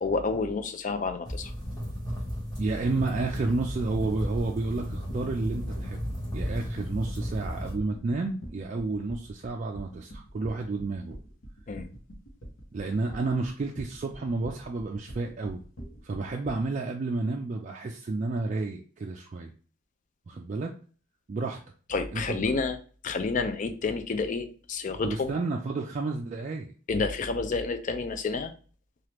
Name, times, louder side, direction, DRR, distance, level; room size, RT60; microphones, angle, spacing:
voice 1, 0.0-1.5 11.7-11.9 21.9-22.8 23.0-25.3 26.9-28.5, left 4 dB, 40° left, 0.4 m, -29 dB
sound 1, 1.2-7.7, equal, 20° left, 1.1 m, -34 dB
voice 2, 2.6-6.0 6.3-11.2 12.7-15.6 16.0-19.5 20.3-20.7 21.3-21.6 22.1-22.5 25.0-26.7, right 3 dB, 40° right, 0.3 m, -31 dB
sound 2, 4.8-16.7, right 1 dB, 75° left, 0.9 m, -44 dB
3.3 x 2.4 x 2.9 m
head